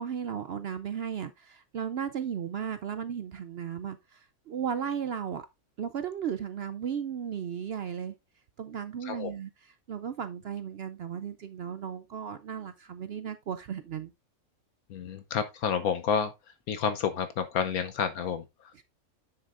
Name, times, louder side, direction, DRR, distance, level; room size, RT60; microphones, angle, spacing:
voice 1, 0.0-5.5 5.8-8.1 8.6-14.1 18.7-18.8, right 8 dB, 70° right, 0.6 m, -35 dB
voice 2, 14.9-16.3 16.7-18.8, left 7 dB, 75° left, 1.2 m, -30 dB
9.7 x 7.6 x 2.5 m
omnidirectional pair, 1.6 m